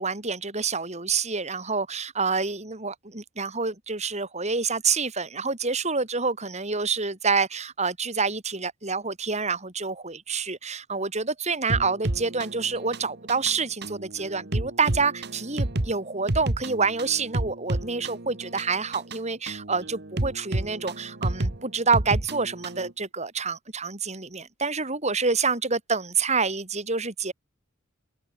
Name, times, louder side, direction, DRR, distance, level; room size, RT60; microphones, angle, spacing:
voice 1, 0.0-27.3, right 4 dB, 35° right, 4.2 m, -27 dB
sound 1, 11.7-22.9, right 1 dB, 55° right, 1.6 m, -31 dB
open air
head